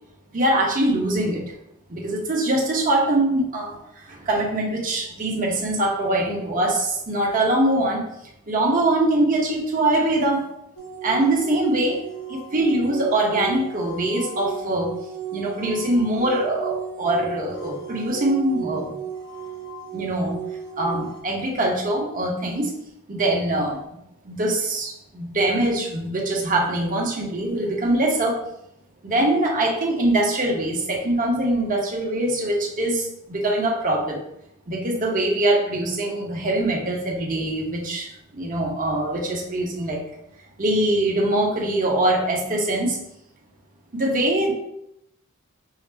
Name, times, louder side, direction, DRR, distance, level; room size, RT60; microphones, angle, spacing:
voice 1, 0.3-1.4 1.9-8.0 8.5-10.4 11.0-12.0 12.3-14.9 15.3-19.0 19.9-20.3 20.8-22.7 23.1-23.8 24.2-28.4 29.0-34.2 34.7-40.0 40.6-43.0 43.9-44.5, right 1 dB, 40° right, -1 dB, 0.9 m, -23 dB
sound 1, 10.8-21.2, right 8 dB, 75° left, 1.0 m, -34 dB
5.5 x 2.0 x 3.3 m, 0.79 s
head